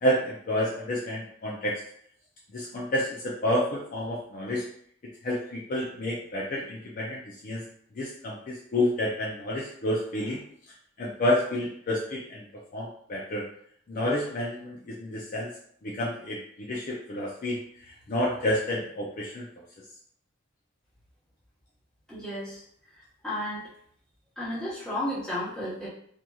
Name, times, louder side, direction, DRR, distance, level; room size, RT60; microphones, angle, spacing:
voice 1, 0.0-1.8 2.5-4.6 5.2-7.6 7.9-10.4 11.0-12.5 12.7-13.5 13.9-15.5 15.8-19.5, left 1 dB, 40° left, -4 dB, 0.4 m, -29 dB
voice 2, 22.1-22.6 23.2-23.6 24.4-25.9, left 1 dB, 5° left, -9 dB, 0.9 m, -32 dB
2.8 x 2.6 x 2.3 m, 0.64 s
head